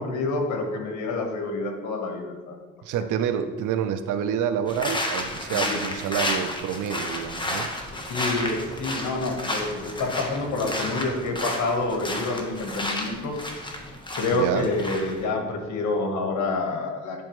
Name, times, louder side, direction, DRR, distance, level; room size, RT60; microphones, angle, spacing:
voice 1, 0.0-2.6 5.5-5.9 8.0-13.4 14.2-17.2, left 2 dB, 75° left, 3 dB, 1.4 m, -28 dB
voice 2, 2.8-7.7 14.3-14.7, right 8 dB, 80° right, 10 dB, 0.6 m, -28 dB
sound 1, 4.7-15.2, left 1 dB, 15° left, 1.1 m, -32 dB
10.5 x 4.2 x 3.1 m, 1.3 s
cardioid pair, 90°, 30 cm